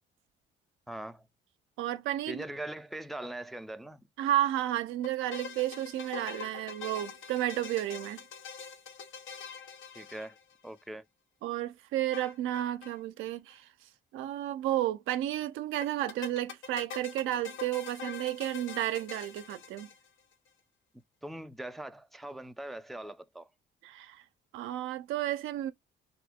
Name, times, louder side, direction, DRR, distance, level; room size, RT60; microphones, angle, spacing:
voice 1, 0.9-1.3 2.3-4.0 9.9-10.4 10.6-11.0 21.2-23.5, right 1 dB, ahead, 0.3 m, -41 dB
voice 2, 1.8-2.4 4.2-8.2 11.4-13.7 14.1-19.9 23.8-24.2 24.5-25.7, right 13 dB, 90° right, 0.4 m, -32 dB
sound 1, 5.0-10.8 12.1-13.0 13.2-13.3 13.5-13.6 15.8-20.3, left 6 dB, 90° left, 0.7 m, -44 dB
2.7 x 2.5 x 3.5 m
cardioid pair, 90°, 20 cm